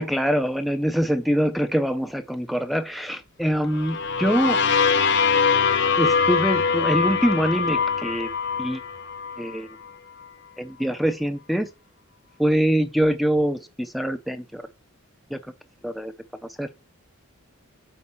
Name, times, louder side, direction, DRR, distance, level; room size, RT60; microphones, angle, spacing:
voice 1, 0.0-4.6 6.0-8.3 8.6-8.8 9.4-9.7 10.6-11.7 12.4-14.6 15.3-15.4 15.8-16.1 16.6-16.7, equal, ahead, 0.4 m, -24 dB
sound 1, 3.7-9.6, left 5 dB, 50° left, 0.6 m, -22 dB
8.5 x 4.2 x 4.3 m
head